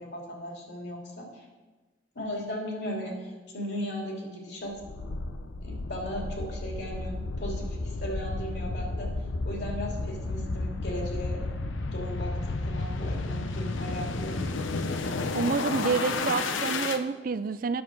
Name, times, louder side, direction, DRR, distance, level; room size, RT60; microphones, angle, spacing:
voice 1, 0.0-1.5 2.1-4.7 5.6-9.1 9.4-11.4 11.9-14.3, equal, 60° left, -1 dB, 2.8 m, -37 dB
sound 1, 4.8-17.0, left 3 dB, 85° left, 0.7 m, -32 dB
voice 2, 15.4-17.8, right 5 dB, 45° right, 13 dB, 0.4 m, -28 dB
10.5 x 7.2 x 6.0 m, 1.2 s
head